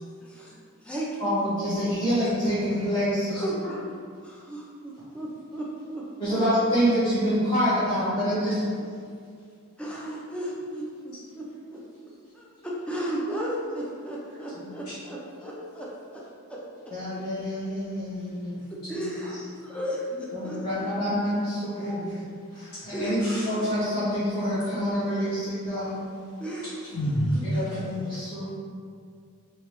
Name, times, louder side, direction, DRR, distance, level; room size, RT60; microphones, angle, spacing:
voice 1, 0.2-1.3 3.3-3.9 4.2-6.4 9.8-11.8 12.3-16.2 16.5-16.9 18.7-20.6 22.9-23.3 26.4-26.8 27.3-27.4, right 1 dB, 5° left, -5 dB, 0.5 m, -35 dB
voice 2, 1.2-3.7 6.2-8.9 14.6-14.7 16.9-18.6 18.9-19.0 20.3-22.1 22.5-26.1 27.5-28.5, equal, 25° left, -14 dB, 1.0 m, -27 dB
voice 3, 23.2-23.7 26.9-27.8 28.1-28.2, equal, 80° left, -12 dB, 1.1 m, -29 dB
3.0 x 2.9 x 3.0 m, 2.2 s
head